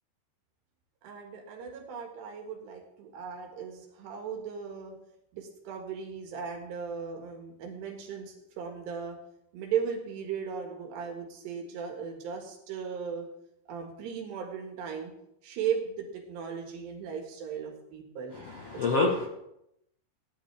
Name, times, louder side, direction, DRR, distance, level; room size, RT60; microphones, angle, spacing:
voice 1, 1.0-5.0 5.3-9.2 9.5-13.3 13.7-15.1 15.4-18.3 19.2-19.3, right 7 dB, 85° right, 1 dB, 3.9 m, -37 dB
voice 2, 18.5-19.3, left 3 dB, 60° left, -1 dB, 1.6 m, -27 dB
17.5 x 10.5 x 3.5 m, 0.80 s
omnidirectional pair, 4.7 m